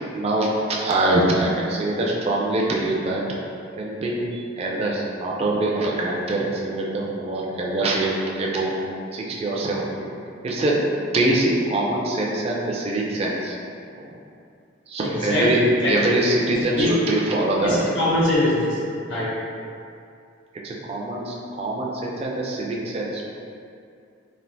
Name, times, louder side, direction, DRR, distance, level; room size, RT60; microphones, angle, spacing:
voice 1, 0.1-3.2 3.8-8.7 9.1-10.1 10.4-13.5 13.9-14.1 14.9-17.8 20.6-23.2, right 1 dB, 30° right, -3 dB, 0.3 m, -24 dB
voice 2, 15.3-15.9 16.7-16.9 17.6-18.8 19.1-19.3, left 1 dB, 70° left, -7 dB, 0.8 m, -22 dB
3.3 x 2.4 x 2.6 m, 2.4 s
head